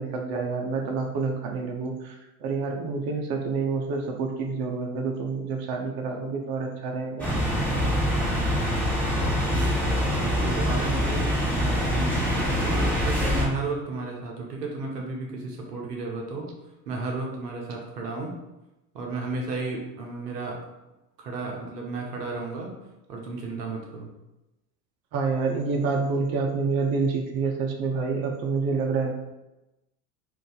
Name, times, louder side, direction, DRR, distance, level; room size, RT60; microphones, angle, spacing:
voice 1, 0.0-2.1 2.4-7.3 25.1-29.1, right 4 dB, 50° right, 2 dB, 0.7 m, -28 dB
sound 1, 7.2-13.5, equal, 5° left, 1.4 m, -24 dB
voice 2, 9.5-16.5 16.9-18.3 18.9-20.6 21.2-22.7 23.1-24.1, right 3 dB, 90° right, 0 dB, 0.8 m, -33 dB
2.6 x 2.5 x 3.8 m, 0.98 s
hypercardioid pair, 80°, 47 cm